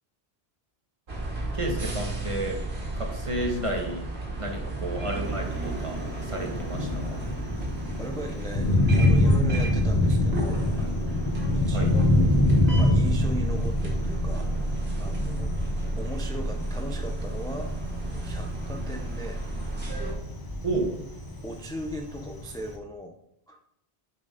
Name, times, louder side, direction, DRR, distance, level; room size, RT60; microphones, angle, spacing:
sound 1, 1.1-20.1, right 2 dB, 70° right, 1.8 m, -32 dB
voice 1, 1.5-2.6 2.9-4.0 4.4-6.0 6.3-7.2 11.7-11.9 20.6-20.9, right 1 dB, 30° right, 1 dB, 1.3 m, -31 dB
Thunder, 5.2-22.8, left 1 dB, 20° left, 0.9 m, -26 dB
voice 2, 8.0-10.7 11.5-12.3 12.7-14.5 15.0-15.5 16.0-17.7 18.0-19.5 21.4-23.2 23.5-23.6, equal, 5° left, 2 dB, 0.4 m, -38 dB
6.7 x 4.4 x 5.2 m, 0.76 s
omnidirectional pair, 1.1 m